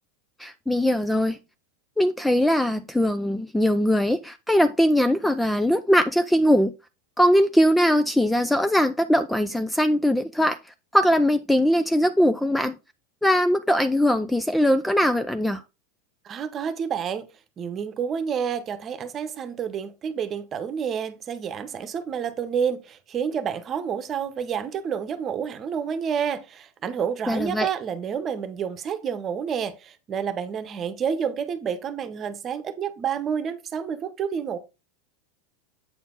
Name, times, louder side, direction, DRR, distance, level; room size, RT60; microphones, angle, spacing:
voice 1, 0.4-1.4 2.0-6.7 7.2-10.6 10.9-12.7 13.2-15.6 27.3-27.7, equal, 5° left, 0.4 m, -21 dB
voice 2, 16.2-17.3 17.6-34.6, right 7 dB, 35° right, 1.0 m, -29 dB
7.9 x 4.3 x 3.9 m
hypercardioid pair, 110°, 0 cm